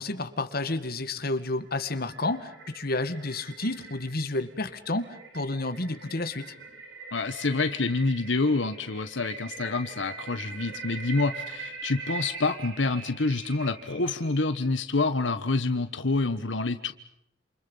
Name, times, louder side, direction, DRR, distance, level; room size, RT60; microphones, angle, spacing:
voice 1, 0.0-6.5, left 2 dB, 55° left, 10 dB, 2.0 m, -31 dB
sound 1, 1.4-14.8, right 4 dB, 80° right, 6.2 m, -43 dB
voice 2, 7.1-16.9, left 3 dB, 90° left, 10 dB, 1.3 m, -27 dB
28.5 x 28.5 x 5.6 m, 0.77 s
head